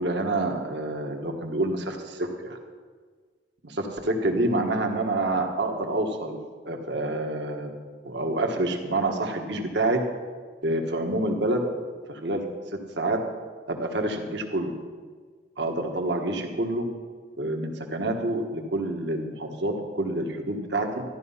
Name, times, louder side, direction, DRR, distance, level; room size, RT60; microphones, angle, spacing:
voice 1, 0.0-2.6 3.6-6.4 6.6-7.7 8.0-10.0 10.6-11.6 12.1-12.5 13.0-13.2 13.7-14.7 15.6-16.9 17.4-21.0, right 2 dB, 70° right, 3 dB, 1.5 m, -27 dB
13.5 x 11.5 x 5.6 m, 1.5 s
head